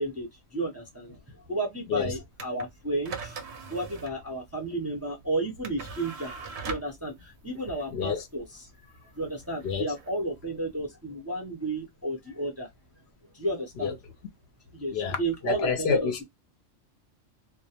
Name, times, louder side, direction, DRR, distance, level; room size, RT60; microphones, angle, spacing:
voice 1, 0.0-3.4 3.7-8.4 9.1-12.7 13.3-14.0 14.7-16.2, right 2 dB, 20° right, 0.5 m, -32 dB
sound 1, 2.3-10.8, right 4 dB, 65° right, 0.8 m, -42 dB
voice 2, 7.9-8.3 9.6-9.9 13.8-13.9 14.9-16.2, left 6 dB, 65° left, 0.7 m, -28 dB
2.3 x 2.0 x 2.8 m
omnidirectional pair, 1.3 m